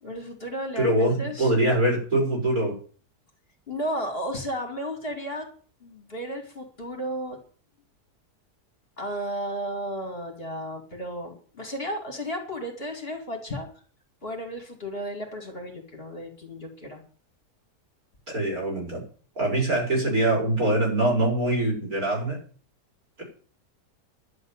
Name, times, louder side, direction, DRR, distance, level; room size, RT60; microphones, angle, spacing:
voice 1, 0.0-1.5 3.7-5.5 5.8-7.4 9.0-13.7 14.2-17.0, equal, 35° left, 2 dB, 3.1 m, -33 dB
voice 2, 0.8-2.7 18.3-19.0 19.4-22.4 23.2-23.3, right 1 dB, 60° right, -2 dB, 6.9 m, -23 dB
11.5 x 7.9 x 9.1 m, 0.42 s
omnidirectional pair, 1.7 m